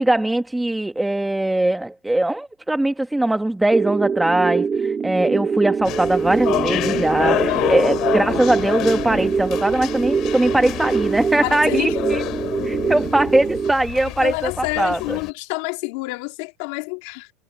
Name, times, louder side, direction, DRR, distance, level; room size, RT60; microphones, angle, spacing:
voice 1, 0.0-12.2 12.6-15.2, right 1 dB, 5° right, 1.3 m, -21 dB
sound 1, 3.7-13.7, right 5 dB, 25° right, 2.9 m, -24 dB
sound 2, 5.8-15.3, left 15 dB, 50° left, 2.4 m, -28 dB
voice 2, 7.4-8.1 11.4-12.0 14.0-17.3, left 27 dB, 70° left, 2.8 m, -28 dB
supercardioid pair, 120°, 0 cm